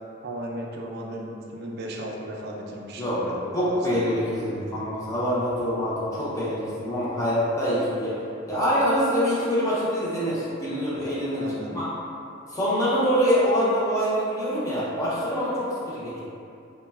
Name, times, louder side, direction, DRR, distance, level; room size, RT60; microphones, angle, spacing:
voice 1, 0.2-4.9 11.4-11.8, right 1 dB, 55° right, -1 dB, 0.3 m, -36 dB
voice 2, 3.5-8.2 8.5-11.9 12.5-16.2, equal, 15° left, -9 dB, 0.5 m, -25 dB
3.0 x 2.1 x 2.3 m, 2.7 s
head